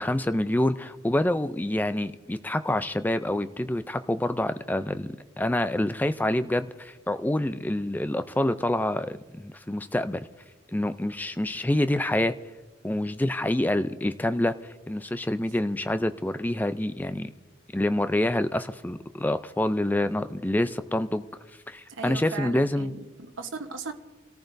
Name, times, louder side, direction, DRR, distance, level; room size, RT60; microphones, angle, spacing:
voice 1, 0.0-10.3 10.7-12.3 12.8-17.3 17.7-21.2 21.7-22.9, left 1 dB, 10° left, 11 dB, 0.4 m, -27 dB
voice 2, 21.9-23.9, right 4 dB, 65° right, 5 dB, 1.1 m, -37 dB
28.5 x 14.0 x 2.6 m, 1.2 s
head